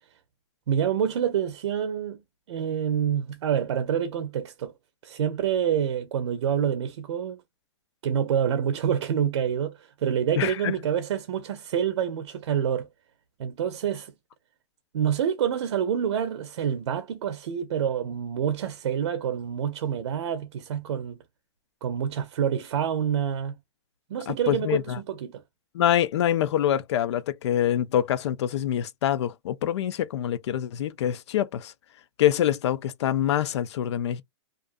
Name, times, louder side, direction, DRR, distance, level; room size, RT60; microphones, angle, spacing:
voice 1, 0.7-2.2 2.5-4.7 5.0-7.4 8.0-12.9 13.4-14.1 14.9-21.2 21.8-23.6 24.1-25.4, right 8 dB, 75° right, 0.6 m, -27 dB
voice 2, 10.4-10.7 24.3-25.0 25.7-31.7 32.2-34.2, left 11 dB, 65° left, 0.4 m, -25 dB
2.5 x 2.4 x 2.4 m
hypercardioid pair, 140°, 15 cm